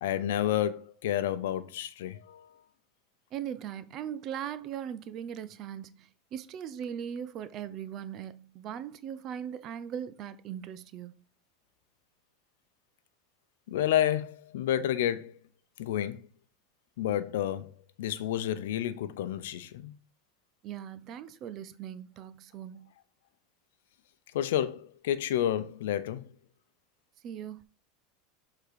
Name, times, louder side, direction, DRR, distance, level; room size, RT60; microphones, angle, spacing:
voice 1, 0.0-2.5 13.7-15.4 15.8-16.2 17.0-17.7 18.0-19.9 24.3-26.3, left 11 dB, 85° left, 0.6 m, -30 dB
voice 2, 3.3-11.2 20.6-22.9 27.2-27.6, right 9 dB, 45° right, 0.6 m, -39 dB
6.7 x 3.8 x 4.7 m
supercardioid pair, 125°, 0 cm